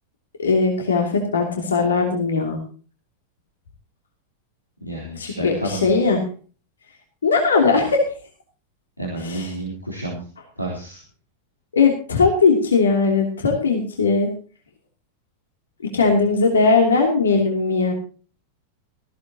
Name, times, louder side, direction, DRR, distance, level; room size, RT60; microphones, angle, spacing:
voice 1, 0.4-2.6 5.2-6.2 7.2-8.0 9.2-9.5 11.7-14.3 15.9-17.9, left 4 dB, 70° left, 2 dB, 2.8 m, -19 dB
voice 2, 4.8-5.9 9.0-10.3 10.6-11.0, right 1 dB, 90° left, -2 dB, 3.4 m, -30 dB
17.5 x 15.0 x 2.9 m, 0.39 s
figure-of-eight pair, 90°, 0 cm